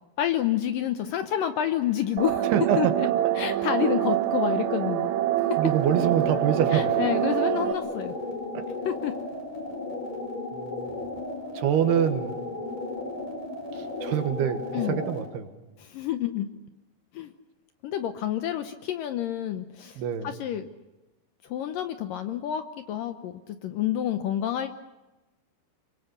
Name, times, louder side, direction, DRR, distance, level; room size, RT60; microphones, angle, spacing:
voice 1, 0.2-2.9 3.4-5.1 5.5-5.6 6.7-8.1 8.9-9.1 14.7-15.0 15.8-16.5 17.1-17.3 17.8-20.6 21.4-24.7, left 11 dB, 70° left, 8 dB, 2.2 m, -29 dB
sound 1, 1.0-7.5, left 2 dB, 45° left, 7.8 m, -49 dB
sound 2, 2.2-7.7, right 12 dB, 90° right, 3.3 m, -25 dB
voice 2, 2.5-2.9 3.2-3.3 3.8-3.9 5.6-7.0 8.5-8.7 10.5-10.9 11.5-12.4 13.7-15.5 20.0-20.3, right 9 dB, 75° right, 8 dB, 3.4 m, -26 dB
sound 3, 5.7-15.3, left 2 dB, 20° left, 4.8 m, -35 dB
26.0 x 24.0 x 6.8 m, 1.1 s
omnidirectional pair, 4.8 m